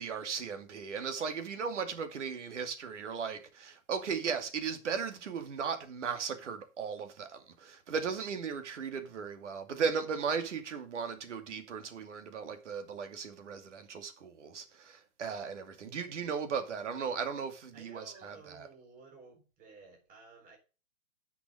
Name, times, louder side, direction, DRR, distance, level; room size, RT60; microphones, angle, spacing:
voice 1, 0.0-18.7, right 6 dB, 60° right, 2.6 m, -37 dB
voice 2, 17.7-20.6, right 4 dB, 20° right, 4.0 m, -55 dB
10.0 x 6.2 x 5.1 m
figure-of-eight pair, 130°, 41 cm